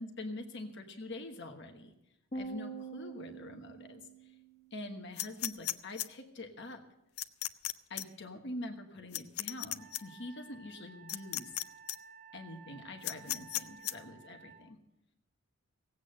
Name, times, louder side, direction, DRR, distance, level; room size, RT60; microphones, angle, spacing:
voice 1, 0.0-1.9 2.3-4.0 4.7-6.8 7.9-11.5 12.3-14.8, left 2 dB, 55° left, 4 dB, 1.3 m, -45 dB
sound 1, 2.3-4.7, right 3 dB, 30° left, 1.1 m, -44 dB
sound 2, 5.2-6.1 7.2-7.7 8.0-8.1 9.1-10.0 11.1-11.6 11.9-12.0 13.0-13.9, left 14 dB, 80° left, 0.5 m, -35 dB
Wind instrument woodwind instrument, 9.8-14.7, right 5 dB, 85° right, 1.6 m, -55 dB
17.5 x 8.4 x 6.5 m, 0.88 s
head